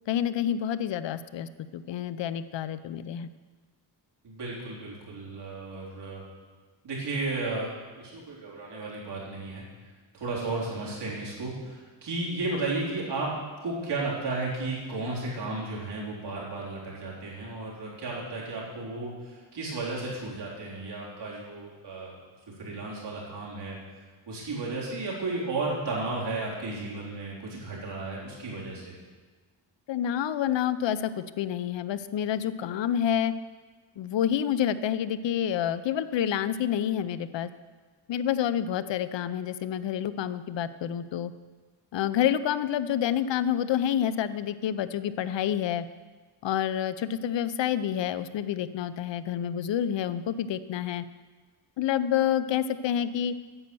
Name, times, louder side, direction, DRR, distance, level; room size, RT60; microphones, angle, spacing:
voice 1, 0.1-3.3 29.9-33.3 34.0-37.5 38.1-41.3 41.9-45.9 46.4-51.0 51.8-53.3, left 10 dB, 75° left, 14 dB, 0.6 m, -28 dB
voice 2, 4.2-6.2 6.8-7.7 8.0-9.6 10.1-13.3 13.6-22.2 22.6-23.8 24.3-28.9, right 2 dB, 65° right, -5 dB, 3.7 m, -33 dB
9.8 x 7.9 x 6.9 m, 1.4 s
wide cardioid pair, 135°, 44 cm